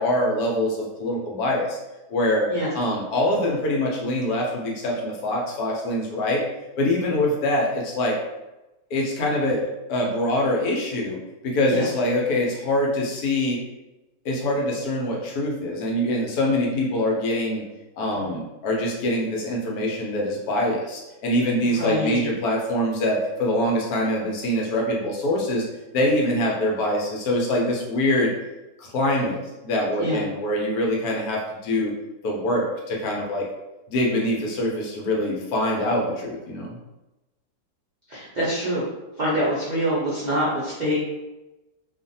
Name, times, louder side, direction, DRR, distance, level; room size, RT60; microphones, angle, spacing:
voice 1, 0.0-1.8 2.1-2.5 2.7-6.4 6.8-8.2 8.9-13.6 14.2-17.6 18.0-25.6 25.9-28.3 28.8-31.9 32.2-33.4 33.9-36.8, left 1 dB, 70° left, -1 dB, 1.1 m, -24 dB
voice 2, 21.6-22.2 30.0-30.2 38.1-38.9 39.1-41.0, equal, 65° right, -8 dB, 0.4 m, -25 dB
2.5 x 2.4 x 2.6 m, 1.0 s
omnidirectional pair, 1.8 m